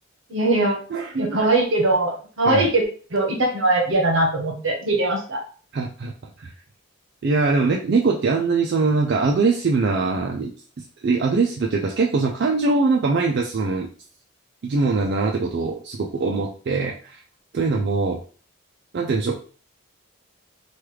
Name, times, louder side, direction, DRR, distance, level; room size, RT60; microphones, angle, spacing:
voice 1, 0.3-0.8 1.2-2.8 3.1-5.4, right 2 dB, 70° right, 1 dB, 0.9 m, -21 dB
voice 2, 0.9-1.5 2.5-2.7 5.7-6.1 6.4-6.5 7.2-10.5 11.0-13.9 14.6-17.2 17.5-18.2 18.9-19.4, right 4 dB, 50° right, 0 dB, 0.4 m, -22 dB
3.2 x 2.3 x 3.1 m, 0.40 s
head